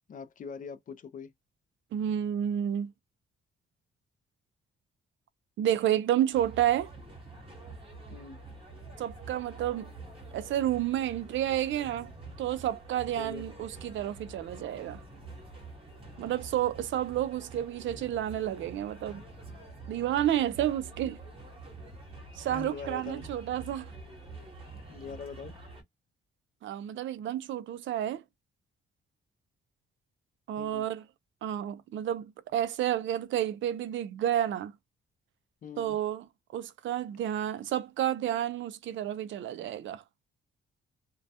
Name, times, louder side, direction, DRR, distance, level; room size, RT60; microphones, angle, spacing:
voice 1, 0.1-1.3 8.1-8.4 13.2-13.5 22.5-23.3 24.9-25.6 30.6-30.9 35.6-36.0, left 5 dB, 40° left, 0.4 m, -42 dB
voice 2, 1.9-2.9 5.6-6.9 9.0-9.9 10.3-12.1 12.4-15.0 16.2-19.2 19.9-21.2 22.4-23.9 26.6-28.2 30.5-31.0 31.4-32.3 32.5-34.7 35.8-36.2 36.5-40.0, right 11 dB, 65° right, 0.4 m, -30 dB
sound 1, 6.3-25.8, right 2 dB, 25° right, 1.0 m, -47 dB
2.2 x 2.1 x 2.7 m
cardioid pair, 145°, 21 cm